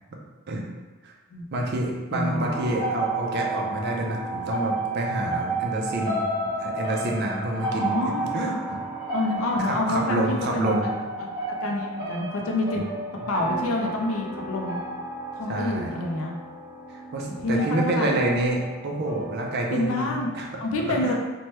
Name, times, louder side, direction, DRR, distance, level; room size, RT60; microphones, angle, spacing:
voice 1, 1.5-6.3 6.6-7.9 8.3-8.8 9.6-10.9 12.8-12.9 15.5-15.9 16.9-20.5 20.9-21.1, right 1 dB, 50° right, 0 dB, 0.4 m, -28 dB
voice 2, 2.1-2.6 7.8-8.3 9.1-11.3 11.6-12.8 13.3-14.8 15.3-16.3 17.4-18.2 19.7-20.3 20.6-21.1, left 2 dB, 75° left, 1 dB, 0.4 m, -27 dB
sound 1, 2.3-20.5, right 2 dB, 20° right, 1.1 m, -32 dB
3.0 x 2.2 x 3.0 m, 1.3 s
head